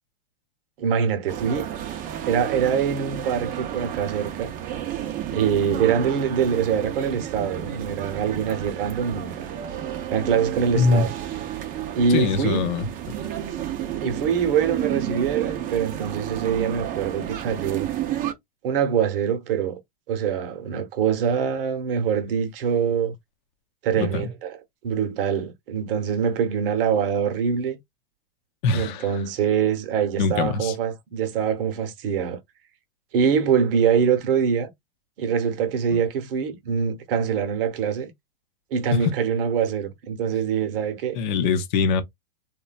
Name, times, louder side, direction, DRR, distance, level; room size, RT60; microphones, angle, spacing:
voice 1, 0.8-1.7 2.3-4.5 5.3-9.5 10.1-11.1 12.0-12.7 14.0-17.9 18.6-19.8 20.1-23.1 23.8-24.5 24.8-27.8 28.7-32.4 33.1-34.7 35.2-38.1 38.7-41.2, right 7 dB, 65° right, 0.9 m, -24 dB
sound 1, 1.3-18.3, right 11 dB, 25° right, 0.6 m, -31 dB
voice 2, 10.7-11.1 12.1-12.9 24.0-24.3 28.6-29.1 30.2-30.7 35.9-36.0 38.9-39.1 41.1-42.0, left 5 dB, 50° left, 0.6 m, -23 dB
3.0 x 2.2 x 2.3 m
hypercardioid pair, 125°, 31 cm